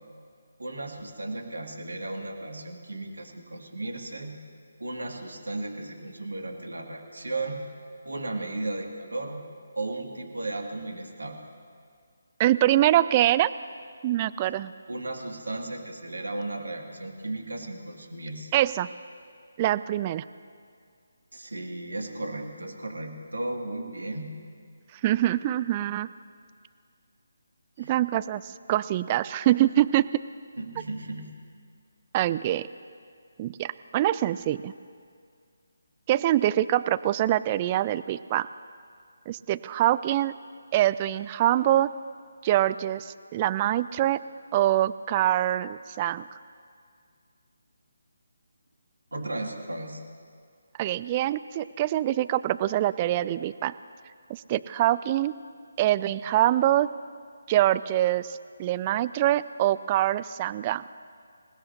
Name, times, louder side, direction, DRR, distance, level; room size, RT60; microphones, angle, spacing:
voice 1, 0.6-4.3 4.8-7.6 8.1-9.4 9.8-11.4 14.9-18.5 21.3-24.3 27.8-27.9 30.6-31.3 49.1-50.0, right 2 dB, 70° right, 2 dB, 2.3 m, -35 dB
voice 2, 12.4-13.5 14.0-14.7 18.5-18.9 19.6-20.2 25.0-26.1 27.8-30.0 32.1-32.7 33.4-34.7 36.1-38.5 39.3-40.3 40.7-41.9 42.4-44.2 44.5-46.2 50.8-53.7 54.3-55.3 55.8-56.9 57.5-60.8, right 13 dB, 25° right, 15 dB, 0.3 m, -24 dB
26.5 x 17.5 x 2.8 m, 2.2 s
figure-of-eight pair, 145°, 0 cm